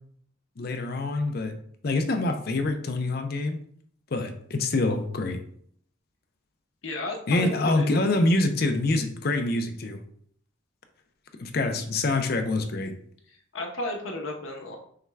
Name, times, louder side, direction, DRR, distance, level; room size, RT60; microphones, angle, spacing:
voice 1, 0.6-1.5 1.8-3.6 4.1-5.4 7.3-10.0 11.4-12.9, left 2 dB, 50° left, 6 dB, 0.5 m, -25 dB
voice 2, 6.8-7.9 13.3-14.8, left 1 dB, 75° left, 2 dB, 0.9 m, -33 dB
5.5 x 2.2 x 3.4 m, 0.63 s
head